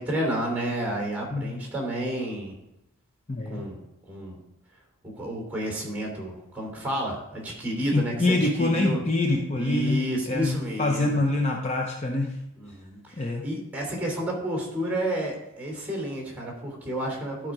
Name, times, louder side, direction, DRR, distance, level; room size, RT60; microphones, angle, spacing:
voice 1, 0.0-2.6 3.5-3.8 4.1-4.4 5.0-9.0 9.5-11.2 12.6-17.5, right 1 dB, 10° right, 0 dB, 2.9 m, -31 dB
voice 2, 3.3-3.7 7.9-12.3 13.2-13.4, left 2 dB, 30° left, 2 dB, 0.7 m, -25 dB
12.0 x 5.1 x 4.8 m, 0.87 s
head